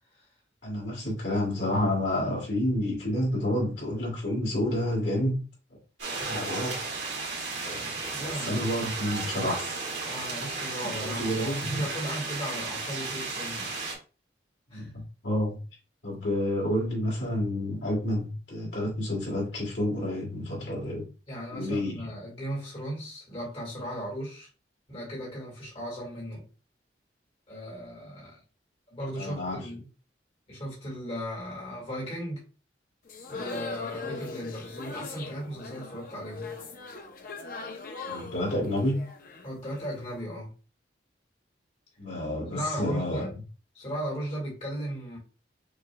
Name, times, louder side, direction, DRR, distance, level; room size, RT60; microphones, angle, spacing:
voice 1, 0.6-5.4 6.1-6.8 7.6-9.8 11.1-11.8 14.7-15.6 16.0-21.0 21.5-22.1 29.2-29.6 38.0-39.0 42.0-43.2, left 1 dB, 75° left, 2.4 m, -29 dB
sound 1, 6.0-13.9, right 3 dB, 70° right, 1.8 m, -34 dB
voice 2, 8.1-8.7 10.0-13.9 14.7-14.9 21.3-24.5 24.9-26.5 27.5-28.4 28.9-29.9 30.5-32.4 33.3-36.5 39.4-40.5 42.5-43.3 43.7-45.2, equal, 35° left, 2.1 m, -36 dB
sound 2, 33.1-40.0, left 4 dB, 50° left, 0.7 m, -40 dB
6.3 x 3.0 x 2.3 m
head